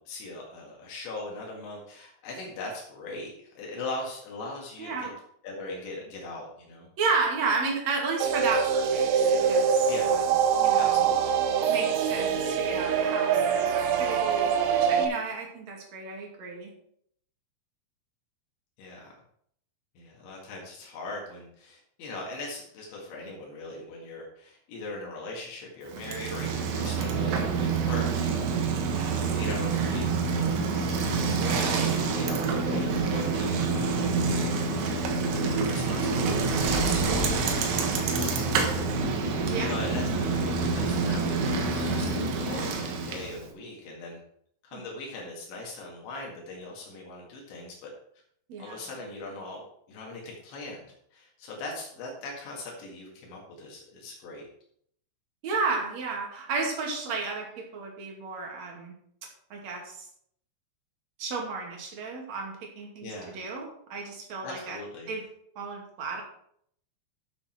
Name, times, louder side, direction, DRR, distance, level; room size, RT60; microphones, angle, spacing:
voice 1, 0.0-5.1 5.4-6.9 9.9-10.2 10.8-11.4 18.8-19.1 20.0-35.1 35.4-37.3 38.3-38.7 39.6-42.1 42.4-44.2 44.6-47.9 48.6-49.6 49.9-54.5 63.0-63.4 64.4-65.1, left 2 dB, 75° left, -2 dB, 4.2 m, -40 dB
voice 2, 4.8-5.1 7.0-10.3 10.5-11.0 11.7-16.7 27.9-28.3 39.5-39.7 44.7-44.8 48.5-48.8 55.4-58.9 59.5-60.1 61.2-64.8 65.1-65.2 65.6-66.2, right 4 dB, 45° right, 0 dB, 3.0 m, -33 dB
sound 1, 8.2-15.0, right 7 dB, 70° right, 2.7 m, -24 dB
Bicycle, 25.9-43.4, right 4 dB, 90° right, 3.9 m, -27 dB
11.5 x 7.8 x 4.4 m, 0.68 s
omnidirectional pair, 5.2 m